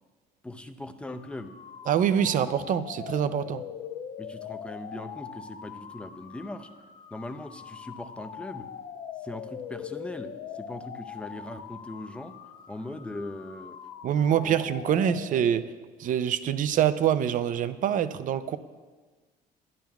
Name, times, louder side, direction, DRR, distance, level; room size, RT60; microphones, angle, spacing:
voice 1, 0.4-1.5 2.2-2.3 4.2-6.7 7.1-8.7 9.2-12.4 12.7-13.8 14.4-14.5, left 2 dB, 5° left, 8 dB, 0.5 m, -40 dB
sound 1, 1.1-15.8, left 8 dB, 55° left, 0.6 m, -42 dB
voice 2, 1.9-3.6 14.0-15.6 16.0-18.6, right 9 dB, 50° right, 13 dB, 0.5 m, -25 dB
12.0 x 10.0 x 2.3 m, 1.4 s
cardioid pair, 110°, 17 cm